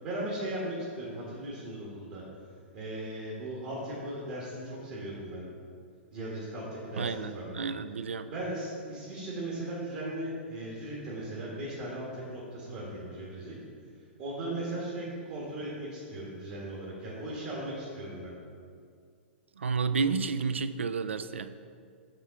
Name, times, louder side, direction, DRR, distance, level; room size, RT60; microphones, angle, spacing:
voice 1, 0.0-2.2 2.7-5.4 6.1-7.6 8.2-13.6 14.2-18.3, right 1 dB, 45° right, -6 dB, 1.6 m, -37 dB
voice 2, 7.0-8.3 19.6-21.5, right 5 dB, 75° right, 12 dB, 0.4 m, -31 dB
7.9 x 3.8 x 5.6 m, 2.2 s
figure-of-eight pair, 105°, 6 cm